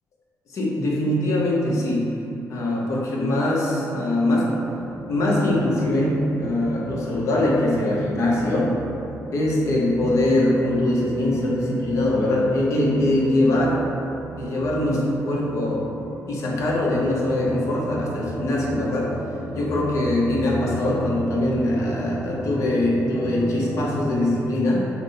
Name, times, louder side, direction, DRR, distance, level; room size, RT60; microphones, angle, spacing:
voice 1, 0.5-2.2 2.5-4.6 5.1-8.7 9.3-13.8 14.4-15.9 16.3-19.2 19.5-24.9, left 1 dB, 60° left, -4 dB, 0.9 m, -22 dB
sound 1, 4.6-24.4, right 1 dB, 15° right, 0.4 m, -36 dB
5.8 x 2.2 x 4.0 m, 2.8 s
cardioid pair, 115°, 6 cm